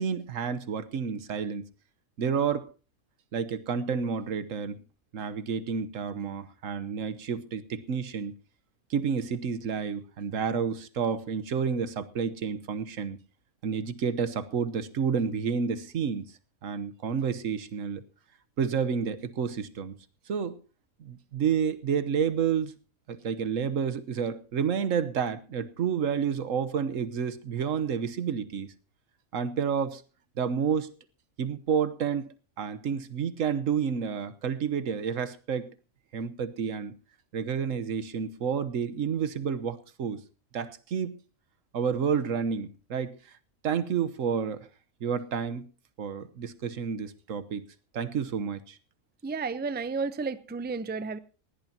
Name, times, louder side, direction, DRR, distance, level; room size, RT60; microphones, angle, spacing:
voice 1, 0.0-1.7 2.2-2.7 3.3-4.8 5.1-8.3 8.9-13.2 13.6-16.3 16.6-18.0 18.6-20.0 20.3-20.6 21.0-22.7 23.1-28.7 29.3-30.0 30.4-30.9 31.4-35.7 36.1-36.9 37.3-40.2 40.5-41.1 41.7-43.1 43.6-44.7 45.0-45.7 46.0-47.6 47.9-48.8, right 7 dB, 85° right, 1.4 m, -30 dB
voice 2, 49.2-51.2, right 4 dB, 15° right, 0.4 m, -32 dB
19.5 x 17.0 x 2.8 m
omnidirectional pair, 1.3 m